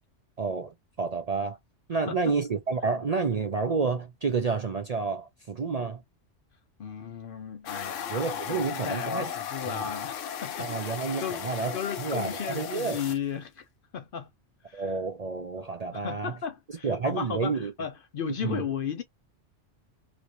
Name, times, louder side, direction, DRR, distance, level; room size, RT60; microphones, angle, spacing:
voice 1, 0.4-1.6 1.9-6.0 8.1-9.3 9.7-9.9 10.6-13.0 14.7-16.3 16.8-17.7 18.4-18.6, right 4 dB, 50° right, 0.5 m, -30 dB
voice 2, 6.8-11.0 11.2-13.7 13.9-14.3 14.7-15.0 15.9-19.0, left 7 dB, 60° left, 0.6 m, -35 dB
sound 1, 7.7-13.2, left 8 dB, 85° left, 1.0 m, -36 dB
3.0 x 2.9 x 2.5 m
omnidirectional pair, 1.2 m